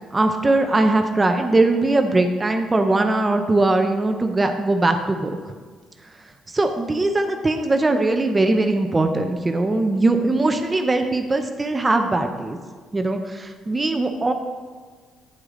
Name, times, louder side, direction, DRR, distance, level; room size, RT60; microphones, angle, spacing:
voice 1, 0.1-5.4 6.5-12.6 12.9-14.3, right 2 dB, 25° right, 6 dB, 0.6 m, -20 dB
9.5 x 4.8 x 3.8 m, 1.5 s
supercardioid pair, 75°, 0 cm